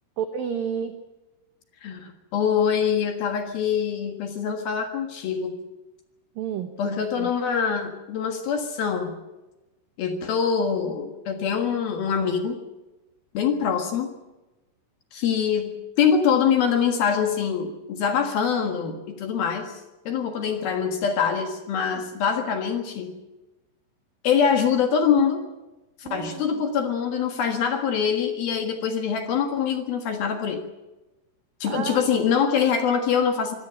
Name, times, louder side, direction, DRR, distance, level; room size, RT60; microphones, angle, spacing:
voice 1, 0.2-1.0 6.4-7.3 21.9-22.0 26.0-26.6 31.6-32.2, right 8 dB, 80° right, 8 dB, 2.0 m, -31 dB
voice 2, 1.8-5.6 6.8-9.2 10.0-12.6 13.3-14.1 15.1-23.1 24.2-25.4 26.0-30.6 31.6-33.6, left 7 dB, 60° left, 6 dB, 2.8 m, -24 dB
25.0 x 17.0 x 7.5 m, 1.1 s
omnidirectional pair, 5.9 m